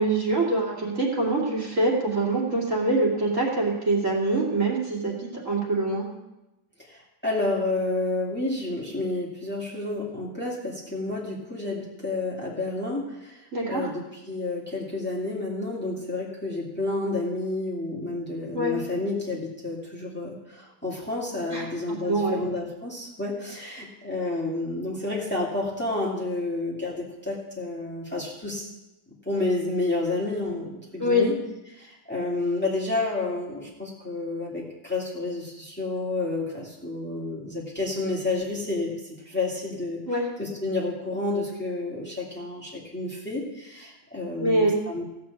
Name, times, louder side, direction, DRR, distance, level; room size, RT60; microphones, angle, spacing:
voice 1, 0.0-6.0 13.5-13.9 18.5-18.7 21.5-21.6 22.1-22.4 31.0-31.3 40.1-40.2 44.4-44.7, right 2 dB, 40° right, -4 dB, 3.0 m, -24 dB
voice 2, 6.9-13.4 13.7-28.7 29.3-31.4 31.7-40.0 40.4-45.0, left 2 dB, 5° left, -4 dB, 2.3 m, -30 dB
16.0 x 6.0 x 8.3 m, 0.99 s
omnidirectional pair, 2.1 m